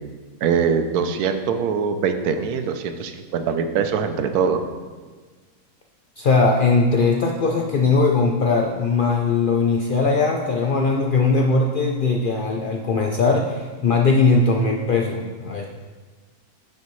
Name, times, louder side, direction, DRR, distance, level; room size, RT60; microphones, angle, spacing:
voice 1, 0.4-4.6, right 6 dB, 80° right, 8 dB, 1.2 m, -22 dB
voice 2, 6.2-15.7, left 3 dB, 85° left, 1 dB, 0.4 m, -20 dB
9.4 x 7.2 x 3.1 m, 1.4 s
omnidirectional pair, 1.6 m